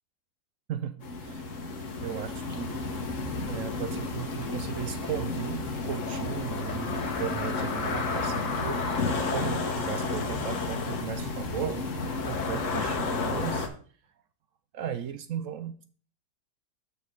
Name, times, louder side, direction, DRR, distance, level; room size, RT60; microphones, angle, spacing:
voice 1, 0.7-1.5 2.0-2.8 3.5-11.9 12.3-13.7 14.7-15.8, right 9 dB, 65° right, 0.8 m, -36 dB
sound 1, 1.0-13.7, left 3 dB, 55° left, 1.5 m, -31 dB
6.4 x 5.4 x 6.6 m
omnidirectional pair, 1.7 m